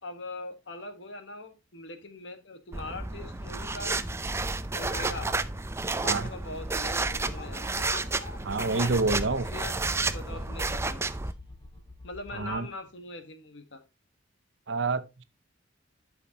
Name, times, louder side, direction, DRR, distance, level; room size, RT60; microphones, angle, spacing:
voice 1, 0.0-4.0 4.7-5.3 5.9-7.7 8.6-11.0 12.0-13.8, left 2 dB, 65° left, 1.5 m, -42 dB
sound 1, 2.7-12.9, left 2 dB, 25° left, 3.2 m, -48 dB
sound 2, 2.7-11.3, right 3 dB, 15° right, 0.5 m, -31 dB
sound 3, 4.9-10.3, left 3 dB, 45° left, 1.2 m, -47 dB
voice 2, 8.4-9.4 12.3-12.7 14.7-15.2, right 3 dB, 65° right, 0.8 m, -28 dB
12.0 x 5.7 x 2.9 m
head